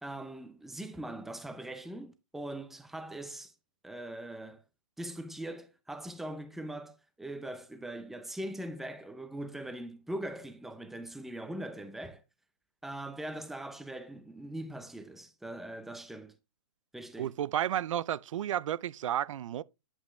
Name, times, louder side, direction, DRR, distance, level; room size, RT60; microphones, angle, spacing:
voice 1, 0.0-3.5 3.8-4.6 5.0-12.2 12.8-16.3 16.9-17.3, right 1 dB, ahead, 0.6 m, -41 dB
voice 2, 17.2-19.6, right 11 dB, 60° right, 0.5 m, -32 dB
9.9 x 5.6 x 3.2 m
hypercardioid pair, 145°, 18 cm